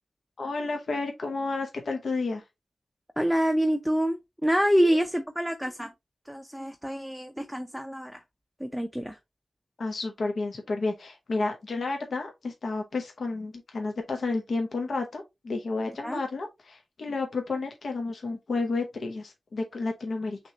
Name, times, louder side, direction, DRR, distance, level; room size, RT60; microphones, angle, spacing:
voice 1, 0.4-2.4 4.8-5.0 9.8-20.4, left 3 dB, 70° left, 0.8 m, -31 dB
voice 2, 3.2-5.9 6.3-8.2 8.6-9.2 16.0-16.2, equal, ahead, 0.5 m, -26 dB
6.1 x 2.9 x 2.8 m
wide cardioid pair, 120°, 0 cm